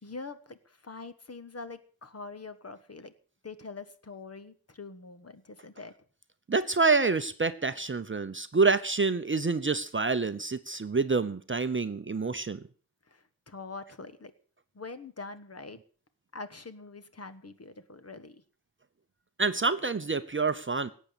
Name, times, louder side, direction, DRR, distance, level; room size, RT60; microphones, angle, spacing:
voice 1, 0.0-3.1 3.4-5.9 13.1-14.3 14.7-15.8 16.3-18.4, left 3 dB, 35° left, 12 dB, 1.3 m, -44 dB
voice 2, 6.5-12.6 19.4-20.9, right 4 dB, 30° right, 11 dB, 0.7 m, -27 dB
18.0 x 8.5 x 6.8 m, 0.43 s
wide cardioid pair, 115°, 41 cm